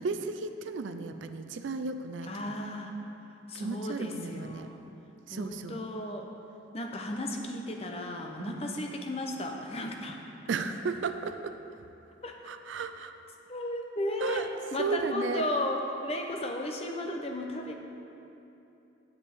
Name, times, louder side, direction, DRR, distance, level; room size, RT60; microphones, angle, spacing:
voice 1, 0.0-2.5 3.5-4.7 5.3-5.8 8.4-8.8 10.5-11.6 12.4-13.1 14.2-14.5 14.8-15.5, right 4 dB, 75° right, 9 dB, 0.4 m, -34 dB
voice 2, 2.2-2.9 3.5-4.8 5.3-6.3 6.7-10.2 12.2-12.4 13.5-17.7, left 1 dB, 30° left, 2 dB, 0.7 m, -34 dB
10.0 x 8.3 x 3.5 m, 2.8 s
head